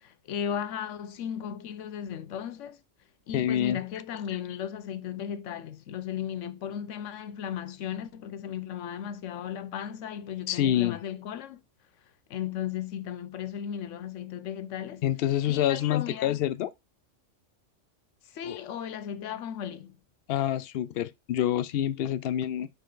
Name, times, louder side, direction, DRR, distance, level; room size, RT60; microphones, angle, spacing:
voice 1, 0.0-2.8 3.3-11.6 12.3-15.0 15.5-16.4 18.3-20.0, left 9 dB, 90° left, 1.0 m, -36 dB
voice 2, 3.3-3.8 10.5-11.0 15.0-16.7 18.5-18.6 20.3-22.7, left 11 dB, 60° left, 0.7 m, -27 dB
5.4 x 4.6 x 3.7 m
omnidirectional pair, 1.3 m